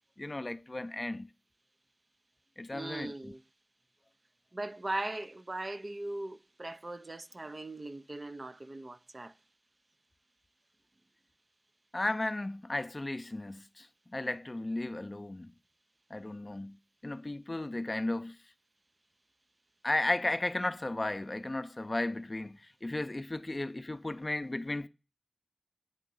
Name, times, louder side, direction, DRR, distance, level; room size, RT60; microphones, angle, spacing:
voice 1, 0.2-1.3 2.6-3.1 11.9-13.9 14.1-15.5 16.1-16.8 17.0-18.4 19.8-24.9, left 2 dB, 40° left, 0.5 m, -34 dB
voice 2, 2.7-3.4 4.5-9.3, right 2 dB, 50° right, 0.5 m, -39 dB
8.8 x 3.7 x 5.4 m
wide cardioid pair, 50°, 0 cm